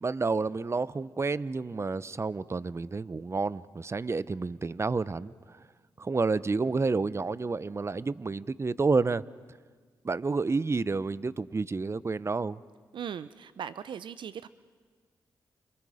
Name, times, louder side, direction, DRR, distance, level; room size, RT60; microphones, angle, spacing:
voice 1, 0.0-5.6 6.0-9.2 10.0-12.6, right 4 dB, 30° right, 18 dB, 0.7 m, -30 dB
voice 2, 12.9-14.5, right 8 dB, 70° right, 15 dB, 0.6 m, -39 dB
29.5 x 28.5 x 5.0 m, 1.5 s
supercardioid pair, 45°, 9 cm